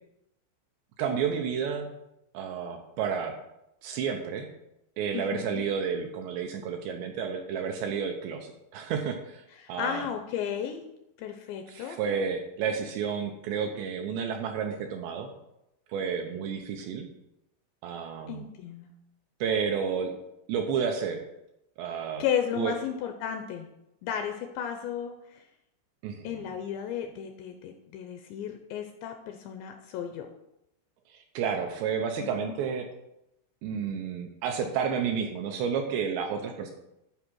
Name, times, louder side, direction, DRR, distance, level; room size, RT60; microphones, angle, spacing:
voice 1, 1.0-2.0 2.3-3.4 3.8-4.5 5.0-10.1 11.7-15.3 15.9-17.1 17.8-18.4 19.4-20.1 20.5-21.2 21.8-22.2 22.5-22.7 26.0-26.4 31.1-32.9 33.6-36.7, right 6 dB, 80° right, 4 dB, 2.6 m, -31 dB
voice 2, 5.1-5.6 9.6-10.8 11.2-12.0 18.3-18.9 22.2-23.7 24.0-25.4 26.2-30.3 32.2-32.5, left 8 dB, 80° left, 6 dB, 2.6 m, -34 dB
11.5 x 4.9 x 6.2 m, 0.85 s
omnidirectional pair, 5.7 m